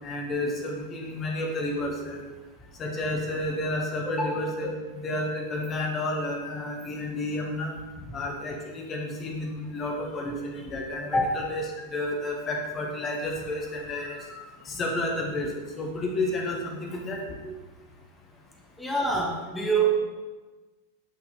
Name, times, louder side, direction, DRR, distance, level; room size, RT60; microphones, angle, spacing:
voice 1, 0.0-2.2 2.8-7.7 8.1-15.5 15.8-17.2, left 1 dB, 25° left, 0 dB, 1.8 m, -31 dB
voice 2, 18.8-19.9, right 4 dB, 10° left, -1 dB, 1.7 m, -26 dB
10.5 x 5.8 x 3.5 m, 1.3 s
figure-of-eight pair, 90°, 0 cm